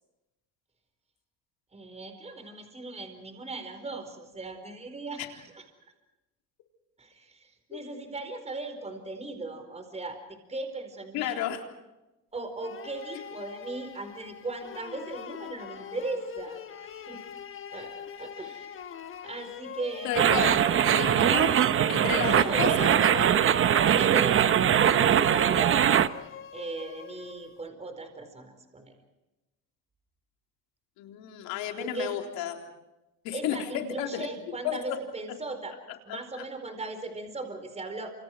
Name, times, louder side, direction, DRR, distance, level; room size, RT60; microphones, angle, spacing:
voice 1, 1.7-5.6 7.0-11.4 12.3-17.2 17.7-18.7 19.2-20.4 22.1-23.0 23.8-25.8 26.5-28.9 31.8-32.1 33.3-35.7 36.1-38.1, right 3 dB, 20° right, 7 dB, 4.6 m, -38 dB
voice 2, 11.1-11.6 20.0-20.6 20.9-21.5 21.9-23.4 31.0-32.7 33.2-34.3 34.6-35.0 36.1-36.4, left 10 dB, 80° left, 3 dB, 3.9 m, -32 dB
sound 1, 12.6-27.7, left 8 dB, 35° left, 1.3 m, -43 dB
sound 2, 20.1-26.1, right 9 dB, 35° right, 0.9 m, -22 dB
29.5 x 27.5 x 4.7 m, 0.99 s
cardioid pair, 125°, 35 cm